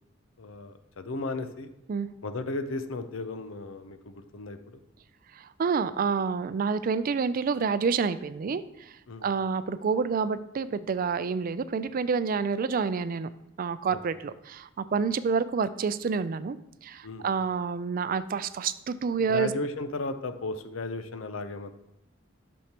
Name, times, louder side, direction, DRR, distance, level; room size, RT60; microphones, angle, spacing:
voice 1, 0.4-1.7 2.2-4.8 9.1-9.3 13.9-14.0 17.0-17.3 19.3-21.7, left 3 dB, 90° left, 9 dB, 0.7 m, -35 dB
voice 2, 5.4-8.9 9.2-13.3 13.6-16.6 16.8-19.5, right 5 dB, 45° right, 14 dB, 0.4 m, -28 dB
12.0 x 6.3 x 2.9 m, 0.87 s
head